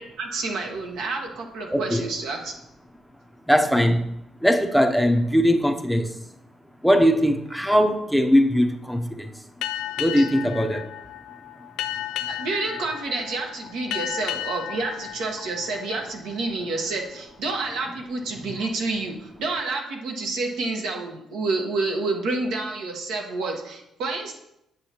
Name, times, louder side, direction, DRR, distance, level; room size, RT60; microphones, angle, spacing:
voice 1, 0.0-2.5 10.2-10.3 12.3-24.4, right 3 dB, 85° right, 1.2 m, -29 dB
voice 2, 1.7-2.1 3.5-4.1 4.4-6.1 6.8-9.3 10.0-10.9, equal, ahead, 0.6 m, -20 dB
Boat Water vehicle, 9.6-16.7, left 12 dB, 85° left, 0.3 m, -34 dB
8.1 x 6.9 x 2.9 m
cardioid pair, 90°, 0 cm